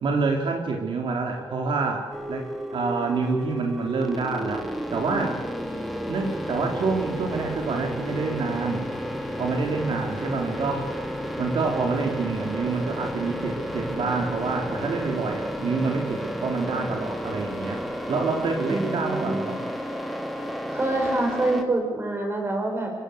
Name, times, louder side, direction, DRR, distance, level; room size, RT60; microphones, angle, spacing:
voice 1, 0.0-2.5 2.7-5.4 6.1-8.9 9.4-17.8 18.1-19.6, right 4 dB, 70° right, 2 dB, 3.4 m, -27 dB
sound 1, 2.1-21.6, equal, ahead, 2.6 m, -32 dB
voice 2, 18.7-19.5 20.7-22.9, right 2 dB, 25° right, 2 dB, 6.2 m, -26 dB
26.5 x 16.0 x 8.4 m, 1.3 s
wide cardioid pair, 130°, 9 cm